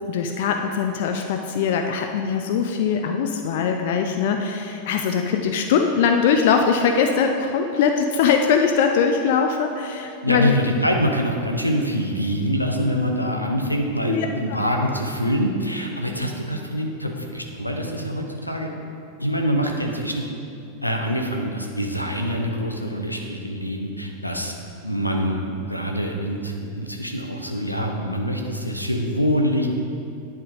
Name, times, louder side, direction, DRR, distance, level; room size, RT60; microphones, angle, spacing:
voice 1, 0.1-10.6 14.0-14.3, left 6 dB, 50° left, 4 dB, 0.4 m, -21 dB
voice 2, 10.2-18.7 19.2-20.2 20.8-24.5 24.8-29.7, equal, 90° left, 2 dB, 0.7 m, -25 dB
10.5 x 3.6 x 4.9 m, 2.5 s
figure-of-eight pair, 90°, 0 cm